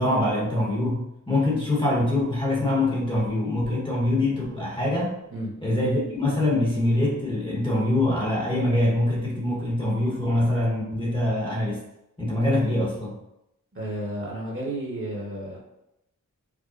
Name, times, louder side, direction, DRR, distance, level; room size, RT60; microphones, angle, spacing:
voice 1, 0.0-5.2 5.6-11.8 12.2-13.1, left 1 dB, 15° left, -5 dB, 1.1 m, -24 dB
voice 2, 13.7-15.6, right 1 dB, 40° right, -4 dB, 1.3 m, -32 dB
4.9 x 2.2 x 2.5 m, 0.84 s
wide cardioid pair, 70°, 33 cm